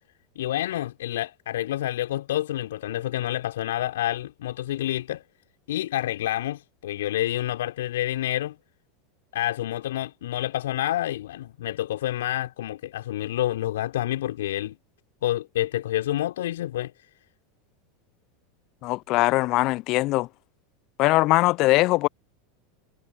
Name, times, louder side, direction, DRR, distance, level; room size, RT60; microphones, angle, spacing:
voice 1, 0.4-5.2 5.7-8.6 9.3-14.8 15.2-16.9, left 13 dB, 65° left, 4.0 m, -28 dB
voice 2, 18.8-20.3 21.0-22.1, left 20 dB, 50° left, 0.5 m, -21 dB
figure-of-eight pair, 80°, 0 cm